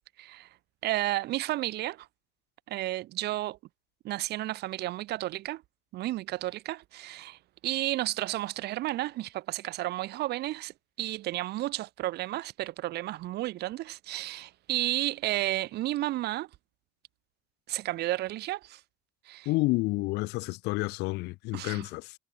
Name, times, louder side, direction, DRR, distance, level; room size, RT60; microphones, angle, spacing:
voice 1, 0.2-0.6 0.8-2.1 2.7-3.6 4.0-5.6 5.9-16.5 17.7-18.8 19.2-19.5 21.5-21.9, right 16 dB, 75° right, 1.6 m, -32 dB
voice 2, 19.5-22.1, left 22 dB, 90° left, 0.6 m, -29 dB
cardioid pair, 110°, 17 cm